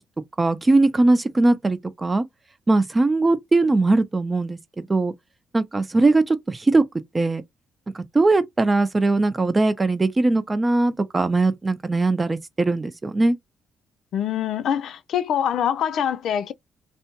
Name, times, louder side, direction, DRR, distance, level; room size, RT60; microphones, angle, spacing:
voice 1, 0.4-2.2 2.7-5.1 5.5-6.8 7.1-7.4 7.9-13.4, right 2 dB, 25° right, 0.6 m, -20 dB
voice 2, 14.1-16.5, left 9 dB, 70° left, 0.3 m, -24 dB
2.6 x 2.2 x 2.9 m
cardioid pair, 90°, 0 cm